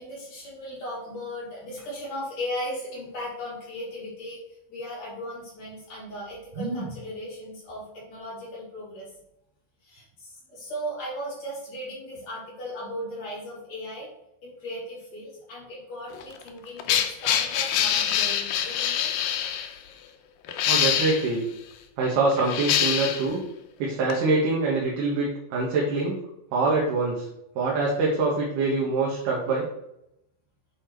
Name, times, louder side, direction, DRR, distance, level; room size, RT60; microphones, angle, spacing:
voice 1, 0.0-4.4 4.7-9.1 9.8-14.1 14.4-19.1, equal, 50° left, -6 dB, 4.2 m, -37 dB
voice 2, 6.6-6.9 20.7-21.4 22.0-23.4 23.8-26.2 26.5-27.3 27.6-29.7, right 3 dB, 70° right, -4 dB, 2.8 m, -24 dB
sound 1, 16.1-19.7 20.5-21.3 22.3-23.3 24.1-24.2, left 9 dB, 85° left, 2.5 m, -25 dB
8.4 x 4.3 x 4.5 m, 0.81 s
omnidirectional pair, 4.1 m